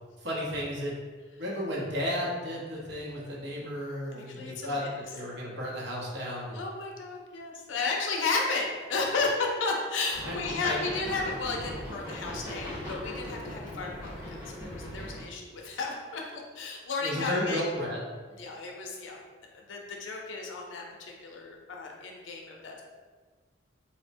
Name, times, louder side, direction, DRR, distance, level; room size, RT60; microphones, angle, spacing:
voice 1, 0.2-0.9 1.3-6.6 10.2-10.8 17.0-18.0, equal, 60° right, -4 dB, 0.8 m, -33 dB
voice 2, 4.1-4.9 6.5-17.6 18.3-19.2 19.5-22.8, left 3 dB, 75° left, 0 dB, 0.5 m, -33 dB
sound 1, 10.1-15.2, left 1 dB, 10° right, 1.0 m, -39 dB
4.2 x 2.1 x 2.5 m, 1.5 s
head